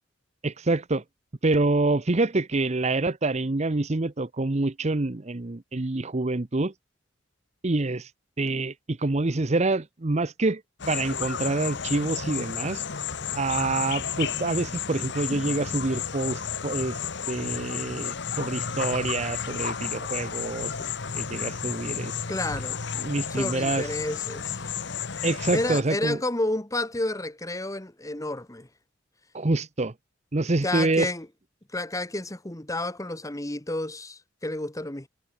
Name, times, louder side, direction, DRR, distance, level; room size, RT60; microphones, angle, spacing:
voice 1, 0.4-1.0 1.4-6.7 7.6-8.1 8.4-10.6 10.9-12.8 13.4-17.0 17.3-20.9 21.2-22.1 23.0-23.9 25.2-26.2 29.3-29.9 30.3-31.1, right 2 dB, 35° right, 0.8 m, -26 dB
sound 1, 10.8-25.8, left 7 dB, 60° left, 1.3 m, -32 dB
voice 2, 22.3-22.8 23.3-24.6 25.5-28.7 30.6-31.3 31.7-35.1, left 2 dB, 15° left, 1.5 m, -30 dB
head